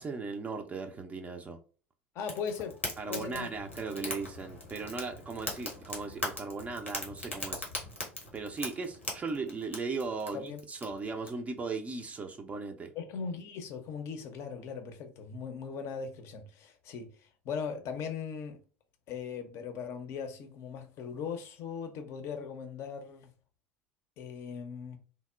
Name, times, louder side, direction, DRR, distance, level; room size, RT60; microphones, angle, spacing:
voice 1, 0.0-1.6 3.0-7.7 8.3-12.9, right 4 dB, 20° right, 0.4 m, -37 dB
voice 2, 2.1-2.8 3.1-3.5 10.3-10.6 12.9-17.1 17.4-18.6 19.1-23.3 24.2-25.0, left 6 dB, 45° left, 0.5 m, -39 dB
Fire, 2.2-11.3, left 1 dB, 90° left, 0.7 m, -40 dB
2.8 x 2.1 x 2.2 m
figure-of-eight pair, 70°, 7 cm